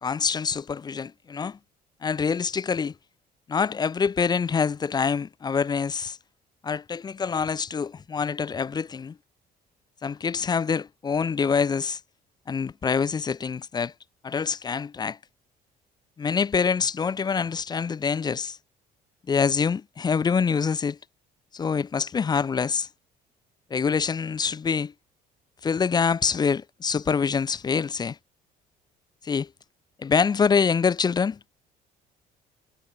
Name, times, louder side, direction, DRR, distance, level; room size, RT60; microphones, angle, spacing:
voice 1, 0.0-1.6 2.0-2.9 3.5-6.2 6.6-9.2 10.0-12.0 12.5-13.9 14.2-15.2 16.2-18.6 19.3-21.0 21.5-22.9 23.7-24.9 25.6-28.2 29.2-29.5 30.0-31.5, left 6 dB, 25° left, 0.5 m, -25 dB
cardioid pair, 110°, 17 cm